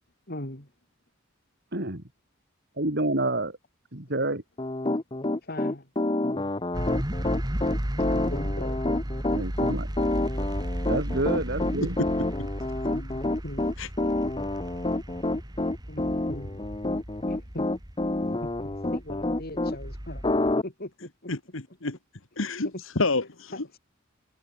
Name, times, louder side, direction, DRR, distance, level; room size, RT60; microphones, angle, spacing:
voice 1, 0.3-0.7 5.4-5.9 8.0-8.8 12.9-13.7 15.9-16.5 17.3-17.7 18.4-21.3 23.5-23.6, left 1 dB, 50° left, 4.6 m, -40 dB
voice 2, 1.7-2.0 2.8-3.6 3.9-4.4 9.3-9.9 10.9-12.0, right 2 dB, 55° right, 4.1 m, -28 dB
Piano, 4.6-19.8 20.2-20.6, left 2 dB, 25° left, 0.9 m, -28 dB
sound 1, 6.7-20.5, equal, 20° right, 2.4 m, -34 dB
voice 3, 21.3-22.0 22.4-23.8, left 3 dB, 75° left, 1.9 m, -29 dB
head